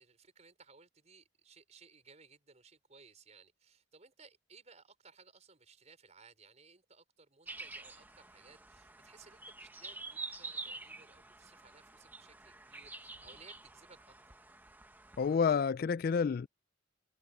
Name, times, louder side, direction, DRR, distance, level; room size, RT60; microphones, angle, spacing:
voice 1, 0.0-14.3, right 4 dB, 35° right, 4.9 m, -60 dB
sound 1, 7.5-15.4, right 3 dB, 10° right, 1.1 m, -48 dB
voice 2, 15.2-16.5, left 6 dB, 50° left, 0.3 m, -29 dB
head